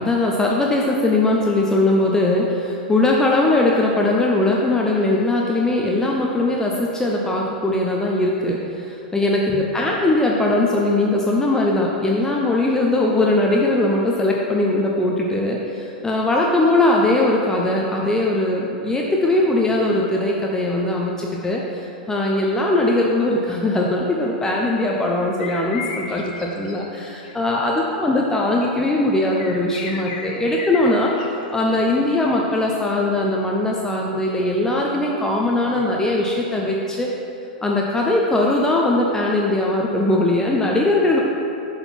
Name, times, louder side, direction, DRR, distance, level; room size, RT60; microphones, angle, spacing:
voice 1, 0.0-31.1 31.5-37.1 37.6-41.2, left 2 dB, 10° left, -2 dB, 0.6 m, -20 dB
sound 1, 24.2-27.7 29.4-31.3 31.7-32.9, left 4 dB, 70° left, 0.9 m, -35 dB
6.9 x 3.9 x 6.1 m, 2.8 s
hypercardioid pair, 110°, 5 cm